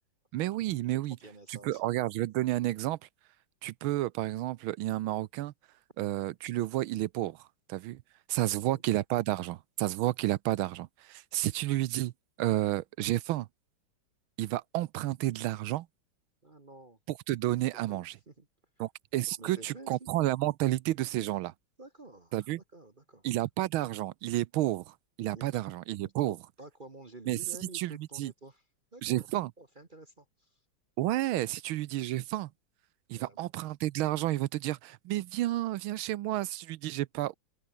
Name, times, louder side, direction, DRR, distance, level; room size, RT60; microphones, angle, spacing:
voice 1, 0.3-1.2 1.5-3.0 3.6-5.5 6.0-8.0 8.3-12.1 12.4-13.5 14.4-15.9 17.1-18.2 18.8-21.5 22.3-22.6 23.2-26.4 27.3-27.4 27.7-28.3 29.0-29.5 31.0-32.5 33.1-37.3, right 15 dB, 85° right, 1.5 m, -31 dB
voice 2, 0.9-1.8 8.7-8.8 16.4-17.0 17.7-18.5 19.4-20.1 21.8-23.3 25.3-25.5 26.0-28.6 28.9-30.6 33.1-33.4, right 2 dB, 25° right, 1.5 m, -51 dB
open air
omnidirectional pair, 2.2 m